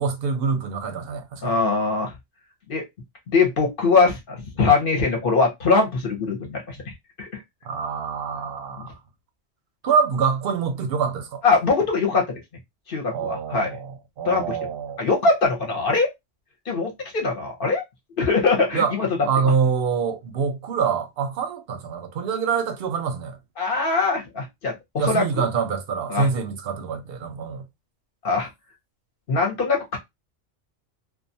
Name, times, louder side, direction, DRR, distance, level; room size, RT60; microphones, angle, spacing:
voice 1, 0.0-1.6 7.6-9.0 9.8-11.4 13.1-15.0 18.7-18.9 19.2-23.4 25.0-27.6, right 6 dB, 60° right, 0.7 m, -25 dB
voice 2, 1.4-2.1 2.7-2.8 3.3-6.9 7.2-7.4 8.8-8.9 11.4-12.4 12.9-13.7 14.2-14.6 15.0-16.1 16.7-17.8 18.2-19.3 23.6-25.4 26.1-26.3 28.2-28.5 29.3-30.0, left 4 dB, 50° left, 0.9 m, -22 dB
2.4 x 2.3 x 2.6 m
omnidirectional pair, 1.3 m